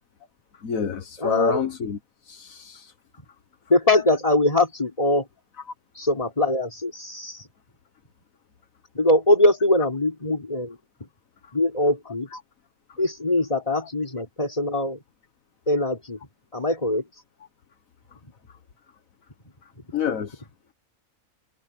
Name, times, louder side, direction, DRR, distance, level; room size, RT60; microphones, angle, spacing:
voice 1, 0.6-2.0 2.3-2.9 11.4-11.5 12.3-12.4 19.9-20.4, left 7 dB, 80° left, 1.7 m, -28 dB
voice 2, 1.2-1.6 3.7-5.3 6.0-7.5 8.9-10.8 11.5-12.3 13.0-15.0 15.7-16.2 16.5-17.0 18.2-18.3, left 2 dB, 25° left, 4.1 m, -22 dB
omnidirectional pair, 1.4 m